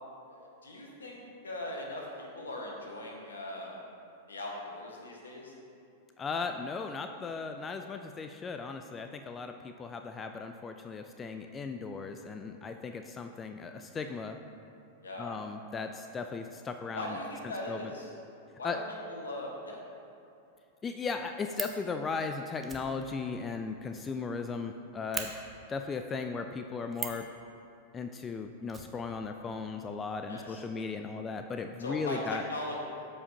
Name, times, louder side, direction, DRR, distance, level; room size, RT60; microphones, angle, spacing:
voice 1, 0.3-3.7 4.3-5.5 15.0-15.4 16.9-18.1 18.6-18.8 19.1-19.8 30.3-30.6 31.8-32.8, left 1 dB, 75° left, -1 dB, 1.4 m, -39 dB
voice 2, 6.2-14.4 15.2-17.2 17.7-17.8 18.6-18.8 20.8-25.3 25.7-27.3 27.9-32.4, left 4 dB, 20° left, 6 dB, 0.3 m, -37 dB
Fire, 20.7-20.8 21.1-21.8 22.6-24.4 24.7-24.8 25.1-25.3 26.9-27.3 28.7-29.6 29.8-29.9 30.1-30.3, right 5 dB, 15° right, 0.7 m, -39 dB
13.0 x 4.9 x 2.8 m, 2.7 s
figure-of-eight pair, 95°, 0 cm